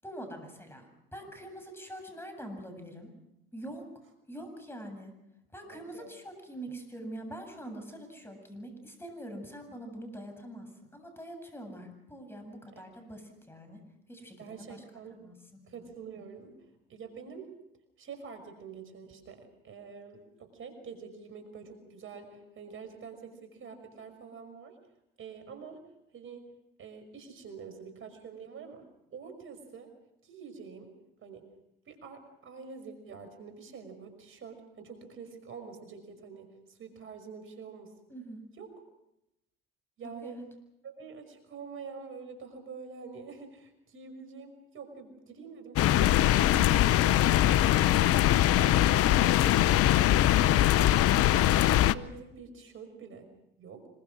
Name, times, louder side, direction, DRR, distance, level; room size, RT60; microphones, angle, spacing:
voice 1, 0.0-3.1 3.5-3.8 4.3-5.1 5.5-13.8 14.1-14.8 15.2-15.3 38.1-38.4 40.0-40.4 51.0-51.2, right 1 dB, 10° left, 5 dB, 8.0 m, -44 dB
voice 2, 5.7-6.1 12.7-12.8 14.4-15.2 15.7-16.6 16.9-17.5 18.0-24.8 25.2-25.8 26.1-26.4 26.8-28.8 29.1-29.9 30.2-30.9 31.2-31.5 31.9-37.9 38.6-38.7 40.0-40.4 40.8-46.7 47.5-50.0 50.8-51.1 51.5-53.3 53.6-53.9, right 5 dB, 45° right, 7 dB, 5.7 m, -46 dB
sound 1, 45.8-51.9, left 13 dB, 50° left, 0.9 m, -22 dB
25.5 x 23.5 x 6.3 m, 0.85 s
hypercardioid pair, 80°, 30 cm